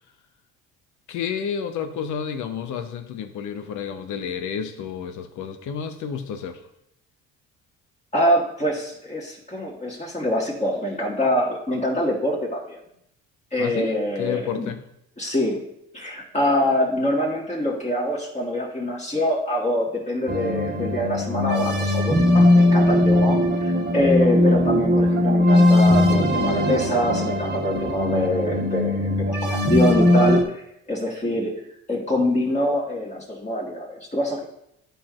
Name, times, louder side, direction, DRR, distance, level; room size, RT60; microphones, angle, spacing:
voice 1, 1.1-6.6 13.6-14.8, left 7 dB, 70° left, 8 dB, 0.9 m, -30 dB
voice 2, 8.1-12.8 13.5-14.7 15.2-15.6 15.9-31.6 31.9-34.4, left 1 dB, 20° left, -4 dB, 1.6 m, -24 dB
sound 1, 20.3-30.4, left 1 dB, 30° right, 1.1 m, -19 dB
11.0 x 4.4 x 2.5 m, 0.78 s
supercardioid pair, 80°, 32 cm